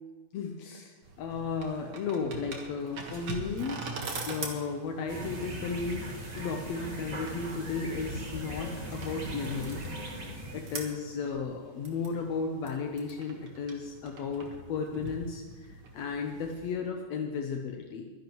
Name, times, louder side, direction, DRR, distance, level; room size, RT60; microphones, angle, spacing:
voice 1, 0.3-3.8 4.3-9.8 10.5-18.1, left 5 dB, 75° left, 3 dB, 1.6 m, -34 dB
sound 1, 1.0-16.7, right 3 dB, 50° right, 1.9 m, -43 dB
sound 2, 5.1-10.8, right 1 dB, 30° right, 1.2 m, -39 dB
23.5 x 10.5 x 3.1 m, 1.4 s
omnidirectional pair, 4.1 m